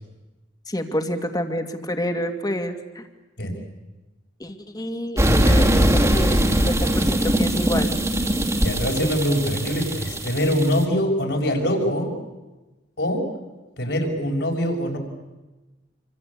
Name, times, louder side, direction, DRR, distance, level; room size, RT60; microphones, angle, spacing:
voice 1, 0.7-3.0 4.4-7.9, equal, 20° left, 6 dB, 2.5 m, -28 dB
sound 1, 5.2-10.8, right 1 dB, 20° right, 2.6 m, -21 dB
voice 2, 8.6-12.1 13.0-13.3 13.8-15.0, equal, 70° left, 2 dB, 6.2 m, -23 dB
27.5 x 25.5 x 8.6 m, 1.1 s
head